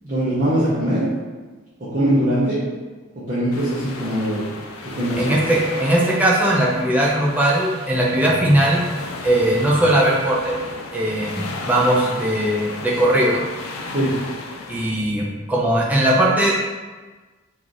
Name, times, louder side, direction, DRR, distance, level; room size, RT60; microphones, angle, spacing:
voice 1, 0.0-1.1 1.8-2.6 3.1-4.5 4.8-5.4 13.9-14.1, right 1 dB, 35° right, -12 dB, 0.8 m, -21 dB
sound 1, 3.5-14.9, left 3 dB, 80° left, 0.4 m, -34 dB
voice 2, 5.2-8.8 9.2-10.5 10.9-13.4 14.7-16.5, right 1 dB, 5° right, -5 dB, 0.5 m, -19 dB
3.1 x 2.5 x 3.8 m, 1.3 s
head